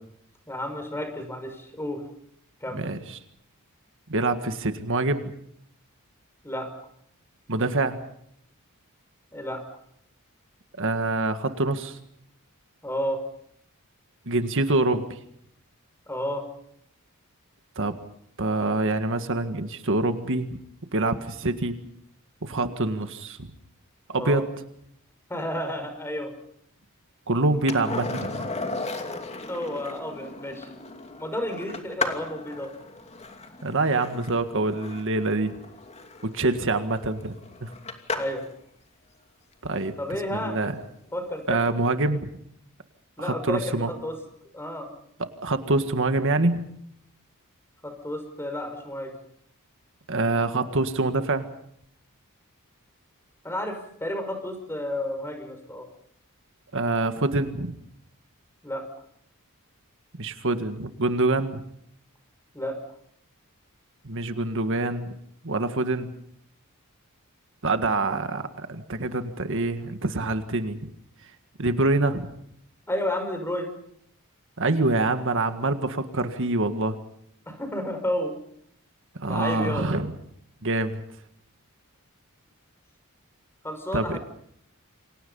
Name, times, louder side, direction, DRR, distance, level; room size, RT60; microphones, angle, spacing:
voice 1, 0.5-2.1 2.6-2.8 6.4-6.7 9.3-9.6 12.8-13.2 16.1-16.4 24.1-24.4 25.3-26.3 29.5-30.7 31.2-32.7 38.1-38.4 40.0-40.6 41.1-41.6 43.2-44.1 44.5-44.9 47.8-49.1 53.4-55.9 58.6-58.9 62.5-62.8 72.9-73.7 77.5-78.3 79.3-79.9 83.6-84.2, left 1 dB, 10° left, 6 dB, 5.6 m, -31 dB
voice 2, 2.7-3.2 4.1-5.3 7.5-8.0 10.8-12.0 14.2-15.2 17.7-17.9 18.4-20.6 20.9-21.8 22.4-23.5 24.1-24.4 27.3-28.5 33.6-35.5 36.3-37.3 37.6-37.7 39.6-39.9 40.3-40.7 41.5-42.3 43.2-43.9 45.4-46.7 50.1-51.5 56.7-57.8 60.2-61.6 64.0-65.1 65.4-66.1 67.6-70.8 71.6-72.3 74.6-77.0 79.2-80.1 80.6-81.0 83.9-84.2, right 2 dB, 60° right, 8 dB, 1.8 m, -25 dB
Skateboard, 27.7-38.5 41.1-41.2, left 3 dB, 30° left, 2.8 m, -36 dB
29.0 x 25.0 x 5.6 m, 0.71 s
head